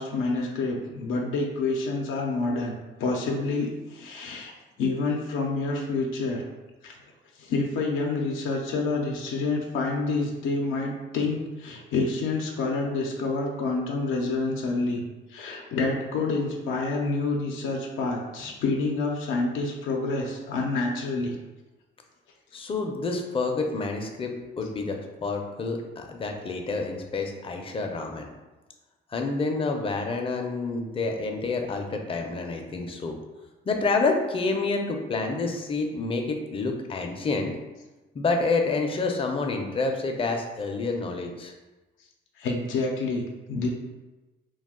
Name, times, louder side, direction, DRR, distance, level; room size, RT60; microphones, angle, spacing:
voice 1, 0.0-6.4 6.8-7.0 7.4-15.0 15.3-21.4 42.4-43.7, left 3 dB, 85° left, 0 dB, 0.5 m, -28 dB
voice 2, 22.5-28.3 29.1-33.2 33.6-37.5 38.1-41.5, left 3 dB, 25° left, 3 dB, 0.4 m, -28 dB
2.3 x 2.3 x 3.5 m, 1.1 s
cardioid pair, 90°, 20 cm